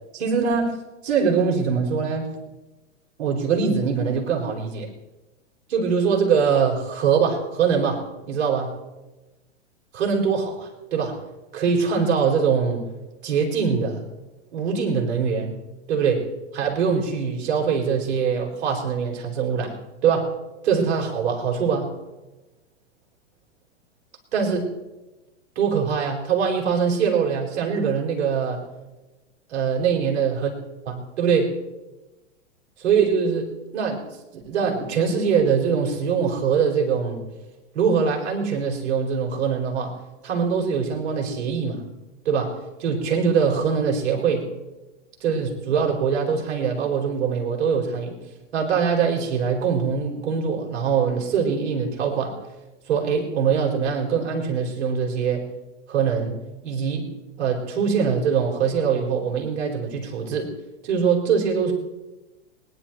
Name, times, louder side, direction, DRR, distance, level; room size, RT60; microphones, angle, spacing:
voice 1, 0.1-0.7 1.0-2.3 3.2-4.9 5.7-8.7 9.9-11.2 11.5-12.9 13.2-14.0 14.5-15.6 15.9-16.2 16.5-19.7 20.0-20.3 20.6-21.9 24.3-24.7 25.6-28.6 29.5-30.5 30.9-31.5 32.8-33.5 33.7-34.0 34.3-37.2 37.7-39.9 40.2-41.8 42.2-44.5 45.2-48.2 48.5-52.3 52.9-55.4 55.9-56.4 56.6-57.1 57.4-60.5 60.8-61.7, right 6 dB, 60° right, 0 dB, 4.6 m, -23 dB
22.5 x 11.0 x 4.4 m, 1.1 s
hypercardioid pair, 105°, 36 cm